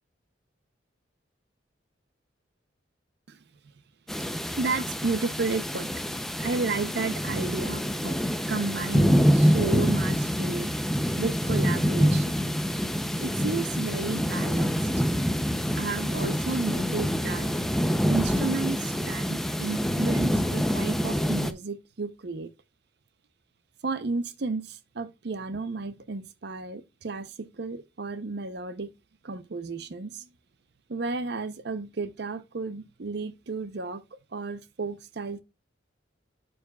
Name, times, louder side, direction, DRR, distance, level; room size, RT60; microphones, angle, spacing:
sound 1, 4.1-21.5, equal, ahead, 0.5 m, -26 dB
voice 1, 4.6-6.0 6.4-12.4 13.2-14.8 15.7-17.5 18.1-22.5 23.8-28.9 29.2-30.3 30.9-34.0 34.3-35.4, right 4 dB, 55° right, 0.6 m, -32 dB
11.5 x 4.7 x 2.3 m
head